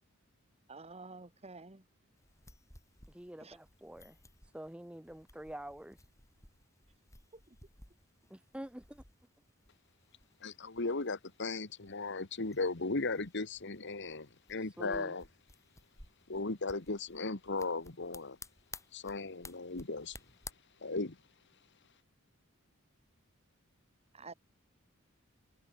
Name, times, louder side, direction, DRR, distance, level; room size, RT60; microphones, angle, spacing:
voice 1, 0.7-1.8 3.4-3.6 24.1-24.3, right 3 dB, 30° right, 2.0 m, -49 dB
sound 1, 2.2-20.5, left 3 dB, 15° left, 7.9 m, -56 dB
voice 2, 3.1-4.2 4.5-6.0 8.3-9.0 14.6-15.2, right 1 dB, 5° right, 0.6 m, -47 dB
voice 3, 10.4-15.2 16.3-18.4 18.9-20.2 20.8-21.2, left 3 dB, 55° left, 1.7 m, -36 dB
head